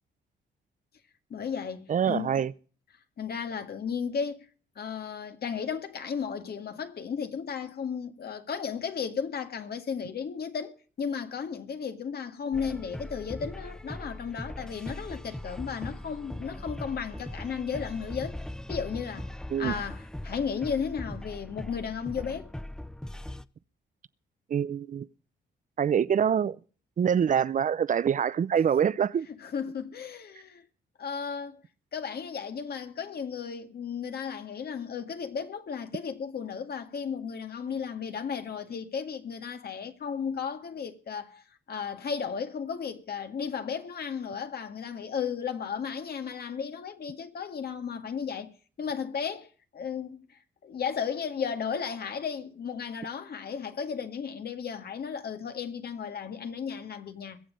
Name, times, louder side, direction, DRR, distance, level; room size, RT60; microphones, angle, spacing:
voice 1, 1.3-2.4 3.2-4.5 4.8-18.4 18.7-22.5 29.3-30.6 31.0-31.6 31.9-48.5 48.8-57.4, left 6 dB, 55° left, 1.9 m, -34 dB
voice 2, 1.9-2.5 19.5-19.7 24.5-25.1 25.8-26.6 27.0-29.3, right 8 dB, 45° right, 0.6 m, -25 dB
sound 1, 12.5-23.5, left 1 dB, 5° left, 0.5 m, -40 dB
22.0 x 7.4 x 5.1 m
cardioid pair, 80°, 19 cm